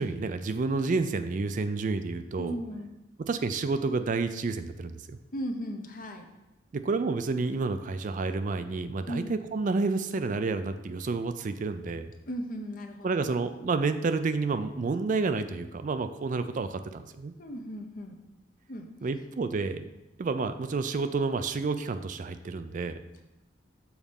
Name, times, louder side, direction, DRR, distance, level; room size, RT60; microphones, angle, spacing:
voice 1, 0.0-2.6 3.2-5.2 6.7-12.1 13.0-17.3 19.0-19.9 20.2-23.0, right 3 dB, 45° right, 10 dB, 0.4 m, -30 dB
voice 2, 2.4-2.9 5.3-6.3 9.1-9.4 12.3-13.3 17.4-18.2 18.7-18.9, equal, 50° left, 4 dB, 0.8 m, -36 dB
7.1 x 4.2 x 5.2 m, 1.0 s
head